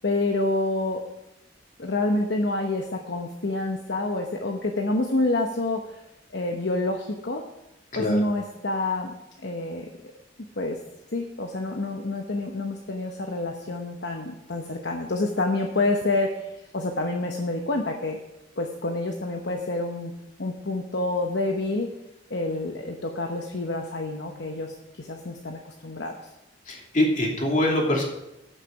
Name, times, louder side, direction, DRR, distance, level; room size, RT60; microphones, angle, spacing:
voice 1, 0.0-1.0 1.8-6.0 6.3-7.4 7.9-9.1 9.4-9.9 10.6-10.8 11.1-18.2 18.6-20.1 20.4-21.9 22.3-26.2, left 2 dB, 60° left, 2 dB, 1.0 m, -28 dB
voice 2, 26.7-28.0, left 1 dB, 45° left, -1 dB, 2.8 m, -23 dB
14.0 x 6.6 x 5.9 m, 0.93 s
head